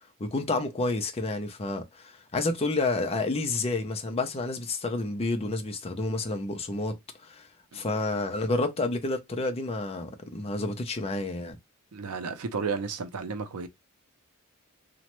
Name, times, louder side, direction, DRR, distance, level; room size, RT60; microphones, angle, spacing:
voice 1, 0.2-7.0 7.2-7.5 7.7-11.6, left 2 dB, 25° left, 0.5 m, -29 dB
voice 2, 11.9-13.7, right 5 dB, 85° right, 0.6 m, -33 dB
3.0 x 2.1 x 2.9 m
head